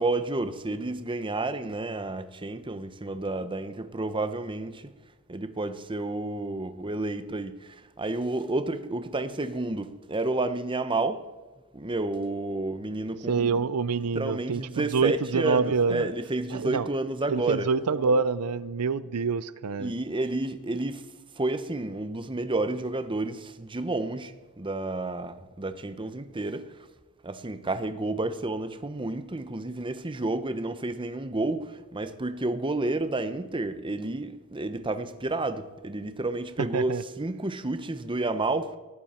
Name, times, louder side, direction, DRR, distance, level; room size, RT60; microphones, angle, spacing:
voice 1, 0.0-4.9 5.3-11.2 11.7-13.5 14.1-17.7 19.8-21.0 21.4-26.9 27.2-38.8, right 2 dB, 20° right, 0.9 m, -30 dB
voice 2, 13.3-16.1 16.5-16.9 17.3-19.9 36.7-37.0, right 5 dB, 80° right, 0.5 m, -26 dB
18.5 x 14.5 x 4.4 m
head